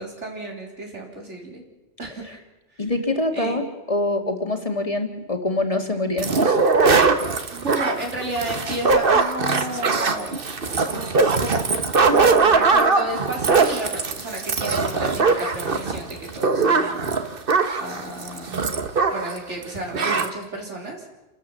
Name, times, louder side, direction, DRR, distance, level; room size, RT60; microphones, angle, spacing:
voice 1, 0.0-1.6 2.0-2.4 2.7-2.9 3.3-3.6 7.5-10.4 10.9-11.6 12.1-18.6 19.1-21.0, right 1 dB, 90° right, 0 dB, 4.5 m, -32 dB
voice 2, 2.8-6.6, left 2 dB, 30° left, 5 dB, 2.1 m, -25 dB
sound 1, 6.2-19.4 19.6-19.7 19.9-20.3, right 4 dB, 50° right, 1.5 m, -20 dB
28.5 x 13.5 x 7.5 m, 1.1 s
omnidirectional pair, 1.2 m